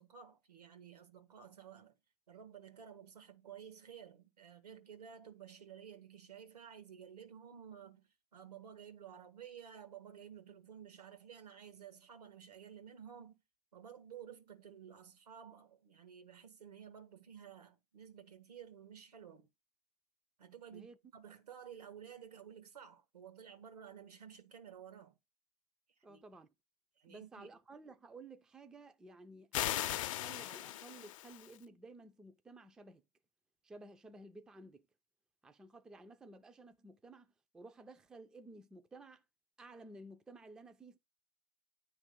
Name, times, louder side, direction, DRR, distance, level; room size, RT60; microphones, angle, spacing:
voice 1, 0.0-2.0 2.3-13.4 13.7-19.5 20.4-25.1 26.0-26.2 27.0-27.5, right 8 dB, 90° right, 1.5 m, -53 dB
voice 2, 26.0-26.5 27.1-33.0 33.6-34.9 35.4-39.2 39.6-41.0, right 2 dB, 5° right, 0.3 m, -55 dB
sound 1, 29.5-31.6, left 13 dB, 55° left, 0.5 m, -38 dB
9.5 x 3.2 x 5.1 m
hypercardioid pair, 130°, 19 cm